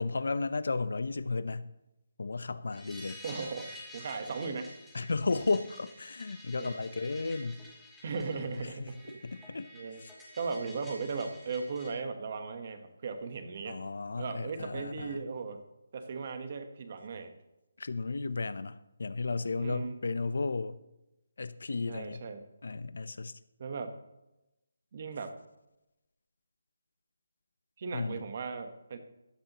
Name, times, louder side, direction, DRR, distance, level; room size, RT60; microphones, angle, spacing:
voice 1, 0.0-1.7 2.2-3.2 4.9-7.6 8.4-8.9 9.2-9.7 10.0-10.1 13.7-15.2 17.8-20.8 21.4-22.3 22.6-23.4 27.9-28.3, left 3 dB, 70° left, 15 dB, 0.7 m, -34 dB
sound 1, 2.7-11.9, left 1 dB, ahead, 1.6 m, -50 dB
voice 2, 3.2-3.7 3.9-4.7 6.5-6.7 8.0-9.2 9.7-10.0 10.3-13.8 14.2-15.6 15.9-17.3 19.6-19.9 21.9-22.4 23.6-24.0 24.9-25.4 27.8-29.0, right 4 dB, 35° right, 8 dB, 1.2 m, -37 dB
15.5 x 12.0 x 3.0 m, 0.94 s
hypercardioid pair, 175°, 0 cm